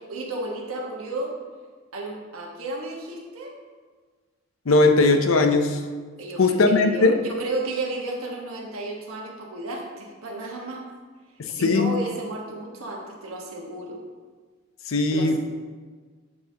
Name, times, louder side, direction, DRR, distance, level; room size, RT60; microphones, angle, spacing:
voice 1, 0.0-1.3 1.9-3.6 6.2-10.8 11.5-14.0 15.1-15.4, right 2 dB, 90° right, -1 dB, 1.3 m, -33 dB
voice 2, 4.7-5.8 6.4-7.2 11.4-12.0 14.9-15.4, left 3 dB, 70° left, 6 dB, 0.6 m, -19 dB
7.9 x 5.6 x 2.8 m, 1.5 s
head